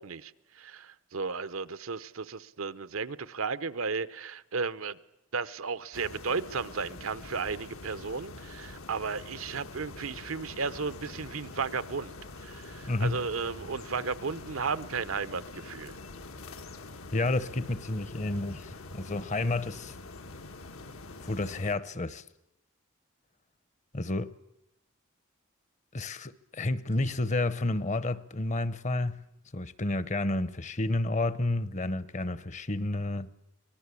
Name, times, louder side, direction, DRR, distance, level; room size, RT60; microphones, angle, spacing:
voice 1, 0.0-5.0 5.3-12.1 12.4-15.9, right 5 dB, 80° right, 0.8 m, -34 dB
sound 1, 5.9-21.7, left 2 dB, 85° left, 1.5 m, -45 dB
voice 2, 12.9-13.2 17.1-19.9 21.2-22.2 23.9-24.3 25.9-29.2 29.5-33.3, left 2 dB, 35° left, 0.8 m, -30 dB
25.0 x 19.5 x 8.3 m
head